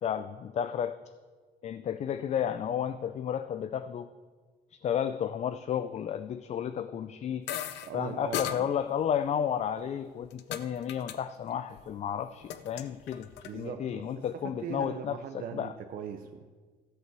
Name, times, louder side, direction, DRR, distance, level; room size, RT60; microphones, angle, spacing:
voice 1, 0.0-1.0 1.6-4.1 4.7-7.5 7.9-15.7, left 9 dB, 40° left, 11 dB, 0.4 m, -32 dB
sound 1, 7.5-7.9 8.3-8.6 9.6-10.6 10.9-11.2 11.4-11.9 12.2-13.5, left 11 dB, 85° left, 0.7 m, -36 dB
voice 2, 7.8-8.7 13.4-16.5, right 8 dB, 60° right, 6 dB, 0.7 m, -40 dB
13.5 x 5.7 x 7.4 m, 1.4 s
cardioid pair, 110°, 17 cm